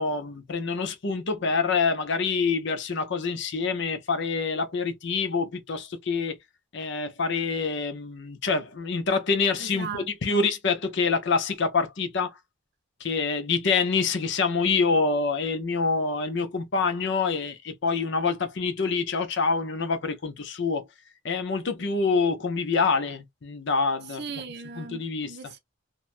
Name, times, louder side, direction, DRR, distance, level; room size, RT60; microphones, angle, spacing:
voice 1, 0.0-6.4 6.7-12.3 13.0-20.8 21.2-24.2 24.8-25.3, left 4 dB, 55° left, 0.6 m, -26 dB
voice 2, 9.6-10.4 24.1-25.6, right 5 dB, 50° right, 0.6 m, -38 dB
2.9 x 2.1 x 2.4 m
head